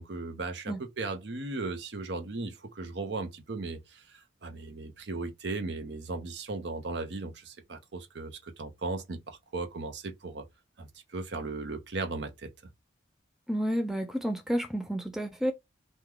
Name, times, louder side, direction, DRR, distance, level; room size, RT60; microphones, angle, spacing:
voice 1, 0.0-10.5 10.8-12.5, right 3 dB, 60° right, 0.7 m, -37 dB
voice 2, 13.5-15.5, equal, ahead, 0.3 m, -30 dB
3.1 x 2.2 x 3.7 m
head